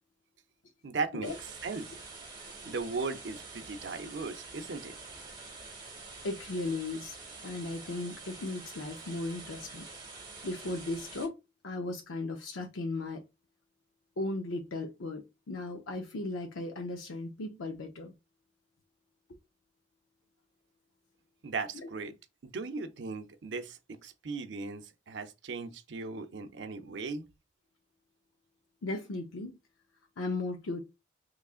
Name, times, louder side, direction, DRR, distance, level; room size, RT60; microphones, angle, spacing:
voice 1, 0.8-1.3 1.6-1.9 2.6-5.0 21.4-22.2 22.4-27.3, right 4 dB, 65° right, 0.5 m, -37 dB
sound 1, 1.2-11.3, right 3 dB, 25° right, 1.0 m, -47 dB
voice 2, 6.2-7.2 7.4-9.8 10.4-11.4 11.6-13.2 14.2-18.1 21.7-21.9 28.8-29.6 30.2-30.8, left 2 dB, 85° left, 0.6 m, -36 dB
3.7 x 3.1 x 2.4 m
head